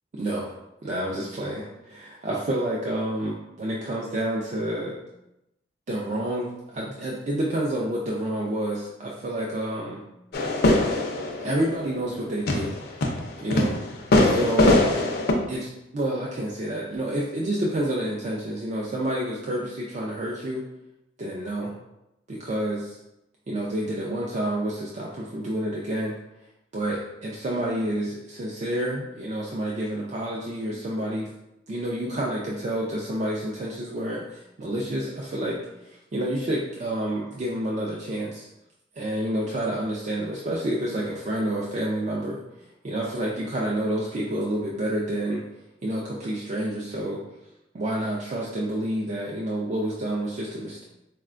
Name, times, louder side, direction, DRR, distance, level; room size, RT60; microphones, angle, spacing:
voice 1, 0.1-0.5 0.8-5.0 5.9-10.0 11.4-12.7 13.4-13.8 14.2-14.8 15.5-15.7 15.9-20.6 21.2-21.7 22.3-23.0 23.5-26.2 26.7-31.3 31.7-38.5 39.0-42.4 42.8-45.4 45.8-47.2 47.7-50.8, right 1 dB, 40° right, -4 dB, 0.3 m, -29 dB
sound 1, 10.3-15.3, left 2 dB, 50° left, 0.4 m, -22 dB
4.2 x 2.2 x 2.4 m, 0.88 s
head